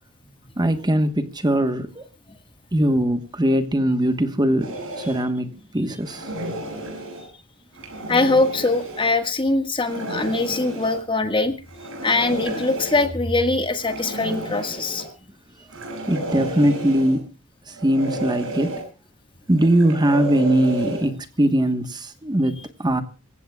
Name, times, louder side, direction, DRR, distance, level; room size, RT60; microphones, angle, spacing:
voice 1, 0.6-2.0 2.7-6.3 16.1-17.3 17.7-18.8 19.5-23.0, right 1 dB, 20° right, 1.2 m, -21 dB
sound 1, 4.6-5.2 6.0-7.3 7.7-9.1 9.8-11.0 11.7-13.1 13.8-15.1 15.7-17.2 17.7-18.8 19.5-21.1, right 1 dB, 65° right, 7.6 m, -32 dB
voice 2, 8.1-11.6 12.0-15.0, left 2 dB, 25° left, 1.6 m, -22 dB
26.0 x 16.0 x 2.3 m
head